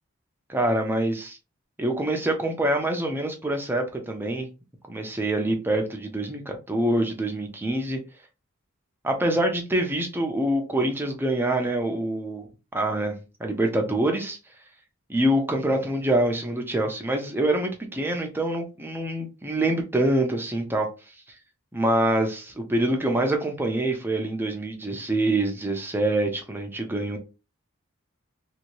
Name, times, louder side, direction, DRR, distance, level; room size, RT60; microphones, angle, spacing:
voice 1, 0.5-1.4 1.8-4.5 4.9-8.0 9.0-12.5 12.7-13.1 13.4-14.4 15.1-20.9 21.7-27.2, right 1 dB, 10° right, 0.6 m, -25 dB
2.7 x 2.7 x 3.0 m
head